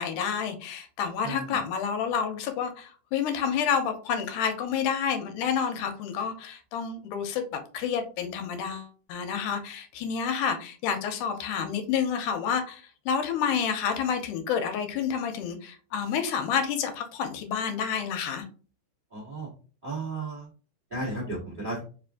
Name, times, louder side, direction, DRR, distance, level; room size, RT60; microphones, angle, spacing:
voice 1, 0.0-18.4, left 7 dB, 90° left, 6 dB, 2.2 m, -29 dB
voice 2, 1.2-1.6 19.1-19.5 19.8-20.5 20.9-21.8, right 2 dB, 70° right, -5 dB, 0.4 m, -34 dB
4.8 x 2.5 x 3.5 m, 0.38 s
omnidirectional pair, 3.6 m